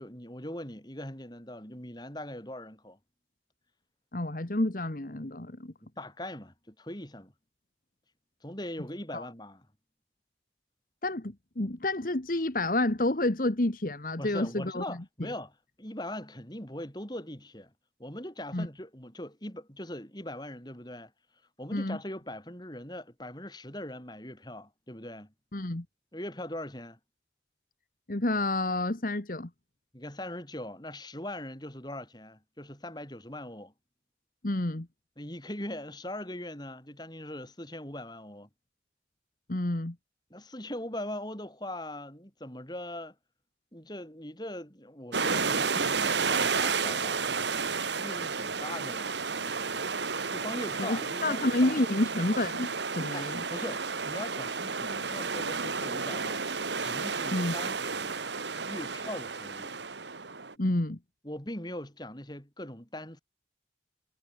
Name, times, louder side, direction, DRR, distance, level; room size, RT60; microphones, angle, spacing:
voice 1, 0.0-3.0 5.8-7.3 8.4-9.7 14.2-17.7 18.0-21.1 21.6-25.3 26.1-27.0 29.9-33.7 35.2-38.5 40.3-43.1 43.7-50.0 50.3-51.8 53.1-56.5 56.8-58.2 58.6-59.8 61.2-63.2, left 1 dB, 25° left, 6.2 m, -41 dB
voice 2, 4.1-5.7 9.1-9.2 11.0-15.0 18.5-18.7 21.7-22.0 25.5-25.8 28.1-29.5 34.4-34.9 39.5-40.0 50.8-53.4 57.3-57.5 60.6-61.0, left 1 dB, 50° left, 1.4 m, -29 dB
sound 1, 45.1-60.5, right 5 dB, 80° right, 2.1 m, -32 dB
head